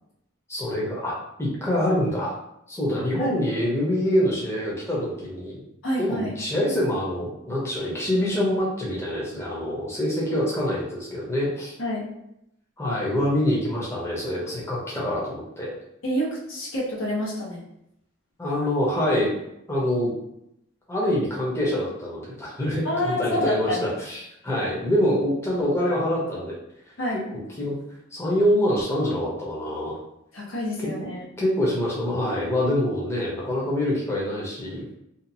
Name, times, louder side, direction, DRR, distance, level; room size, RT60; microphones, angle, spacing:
voice 1, 0.5-2.4 2.7-5.6 6.0-11.7 12.8-15.7 18.4-19.3 19.7-20.1 20.9-26.5 27.3-27.8 28.1-30.0 31.0-31.1 31.4-34.9, left 1 dB, 15° left, -6 dB, 0.7 m, -25 dB
voice 2, 3.0-3.4 5.8-6.3 11.8-12.0 16.0-17.6 22.8-23.9 27.0-27.2 30.3-31.2, equal, 80° left, -4 dB, 0.9 m, -28 dB
2.7 x 2.4 x 2.6 m, 0.80 s
head